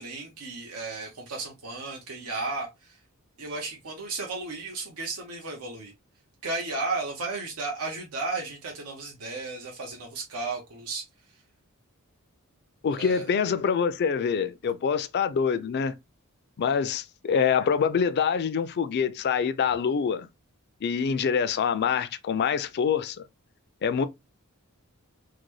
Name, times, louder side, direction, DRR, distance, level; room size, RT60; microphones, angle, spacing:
voice 1, 0.0-3.0 3.4-5.9 6.4-11.0 13.0-13.3, right 3 dB, 85° right, 0.9 m, -34 dB
voice 2, 12.8-15.9 16.6-20.3 20.8-23.2 23.8-24.1, left 6 dB, 50° left, 0.4 m, -25 dB
3.9 x 2.1 x 3.1 m
head